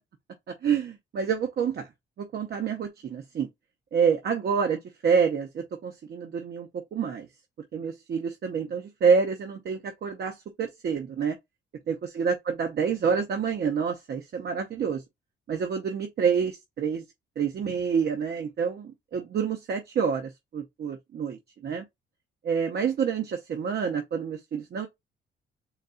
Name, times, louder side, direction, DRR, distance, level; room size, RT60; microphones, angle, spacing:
voice 1, 0.5-1.9 2.3-3.5 3.9-7.3 7.7-11.4 11.9-15.0 15.5-17.0 17.4-21.8 22.4-24.9, right 6 dB, 55° right, 0.7 m, -27 dB
4.1 x 2.3 x 3.9 m
cardioid pair, 90°, 20 cm